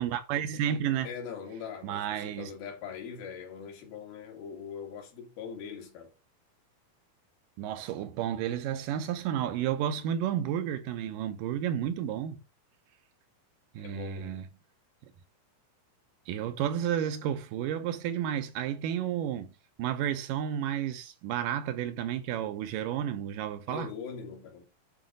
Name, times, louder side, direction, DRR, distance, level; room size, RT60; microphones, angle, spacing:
voice 1, 0.0-1.1 1.8-2.5 7.6-12.4 13.7-14.5 16.3-19.5 19.8-23.9, right 10 dB, 80° right, 2.1 m, -31 dB
voice 2, 1.0-6.1 13.8-14.4 23.7-24.6, left 6 dB, 90° left, 3.8 m, -41 dB
8.8 x 3.7 x 4.8 m
omnidirectional pair, 4.1 m